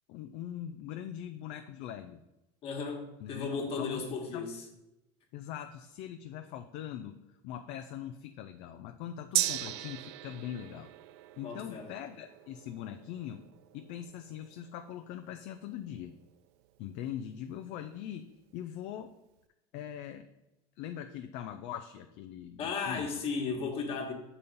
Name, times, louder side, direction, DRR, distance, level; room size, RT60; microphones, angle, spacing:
voice 1, 0.1-2.2 3.2-3.5 3.8-4.4 5.3-10.9 11.4-13.5 13.7-16.1 16.8-18.3 18.5-19.1 19.7-20.3 20.8-23.1 23.4-23.7, left 10 dB, 60° left, 6 dB, 0.5 m, -42 dB
voice 2, 2.6-4.6 11.4-11.9 22.6-24.1, left 5 dB, 45° left, 2 dB, 1.5 m, -35 dB
Gong, 9.3-17.1 17.4-17.5, right 14 dB, 85° right, 0.4 m, -39 dB
6.8 x 4.1 x 5.3 m, 0.95 s
supercardioid pair, 130°, 14 cm